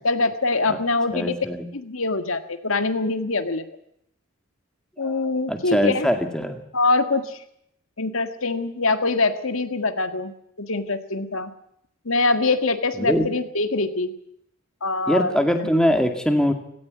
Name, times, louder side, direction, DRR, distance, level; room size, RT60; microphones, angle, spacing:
voice 1, 0.0-1.4 1.7-3.7 5.0-6.1 6.7-7.4 8.0-10.3 10.6-11.5 12.1-14.1 14.8-15.7, left 3 dB, 75° left, 9 dB, 1.8 m, -24 dB
voice 2, 1.1-1.6 5.0-5.2 5.5-6.6 13.0-13.3 15.1-16.5, equal, 5° left, 5 dB, 2.1 m, -22 dB
17.5 x 17.5 x 9.4 m, 0.74 s
head